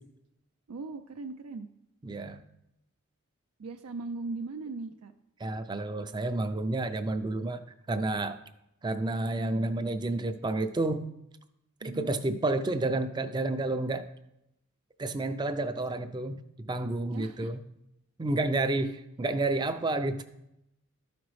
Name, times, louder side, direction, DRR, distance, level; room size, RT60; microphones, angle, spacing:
voice 1, 0.7-1.7 3.6-5.1 11.8-12.2 17.1-17.5, right 3 dB, 80° right, 5 dB, 0.4 m, -38 dB
voice 2, 2.0-2.4 5.4-7.6 7.9-8.4 8.8-11.1 11.8-14.1 15.0-17.6 18.2-20.2, right 2 dB, 20° right, 10 dB, 0.4 m, -30 dB
13.0 x 5.0 x 3.2 m, 0.84 s
head